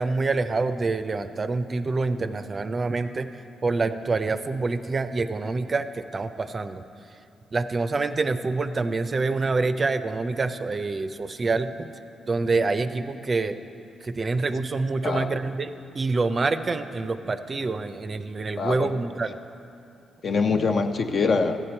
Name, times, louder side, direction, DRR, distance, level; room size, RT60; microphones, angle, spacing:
voice 1, 0.0-3.3 3.6-6.8 7.5-11.9 12.3-13.6 14.0-19.4, right 3 dB, 40° right, 10 dB, 0.4 m, -26 dB
voice 2, 15.0-15.4 18.6-18.9 20.2-21.6, left 4 dB, 55° left, 6 dB, 0.6 m, -24 dB
13.5 x 8.1 x 4.4 m, 2.6 s
cardioid pair, 75°, 0 cm